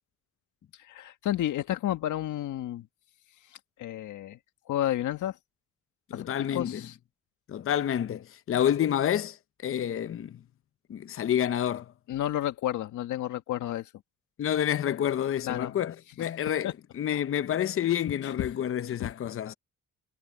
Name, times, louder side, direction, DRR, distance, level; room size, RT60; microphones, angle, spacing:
voice 1, 0.9-2.9 3.8-4.4 4.7-5.4 6.1-7.0 12.1-13.9 15.4-15.8 16.2-16.3 16.6-16.7 18.2-18.5 18.9-19.1, left 12 dB, 80° left, 1.8 m, -31 dB
voice 2, 6.1-6.8 7.5-10.4 10.9-11.9 14.4-19.5, left 10 dB, 45° left, 0.7 m, -29 dB
cardioid pair, 90°, 30 cm